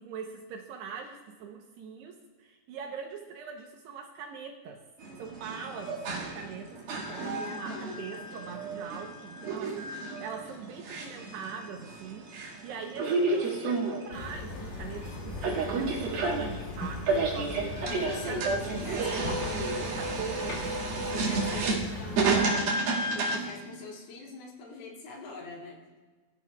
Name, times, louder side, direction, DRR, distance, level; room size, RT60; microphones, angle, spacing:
voice 1, 0.0-4.8 5.2-12.4 12.6-17.8 18.3-20.7 21.5-22.2 22.8-23.1, right 6 dB, 75° right, 2 dB, 2.6 m, -42 dB
sound 1, 5.0-23.6, right 3 dB, 55° right, 3.5 m, -31 dB
voice 2, 6.1-6.5 7.1-8.1 17.9-19.9 21.1-22.6 23.1-26.0, left 3 dB, 85° left, -2 dB, 5.3 m, -43 dB
sound 2, 14.1-22.5, left 2 dB, 45° left, 3.2 m, -39 dB
22.5 x 13.5 x 2.4 m, 1.3 s
omnidirectional pair, 5.6 m